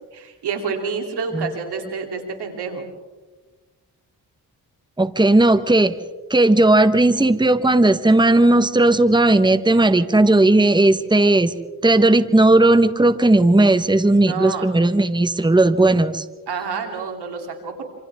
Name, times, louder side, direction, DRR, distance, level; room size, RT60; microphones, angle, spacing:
voice 1, 0.1-2.9 14.3-14.7 16.5-17.8, right 5 dB, 90° right, 3 dB, 3.5 m, -28 dB
voice 2, 5.0-6.0 6.3-11.5 11.8-16.2, right 2 dB, 10° right, 12 dB, 1.2 m, -15 dB
27.5 x 27.0 x 3.7 m, 1.3 s
cardioid pair, 55°, 38 cm